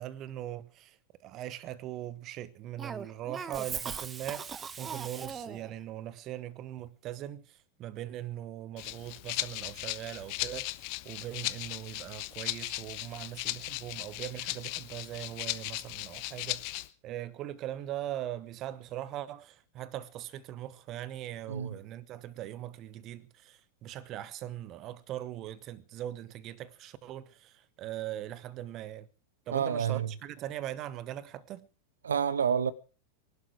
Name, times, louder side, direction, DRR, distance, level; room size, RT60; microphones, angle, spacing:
voice 1, 0.0-16.7 17.0-29.1 29.5-31.7, right 12 dB, 35° right, 1.5 m, -40 dB
Cough, 2.8-5.7, right 6 dB, 20° right, 1.1 m, -39 dB
Rattle (instrument), 8.8-16.9, left 21 dB, 45° left, 1.1 m, -37 dB
voice 2, 29.5-30.1 32.0-32.7, right 7 dB, 70° right, 1.3 m, -28 dB
23.5 x 12.0 x 4.8 m
figure-of-eight pair, 90°, 0 cm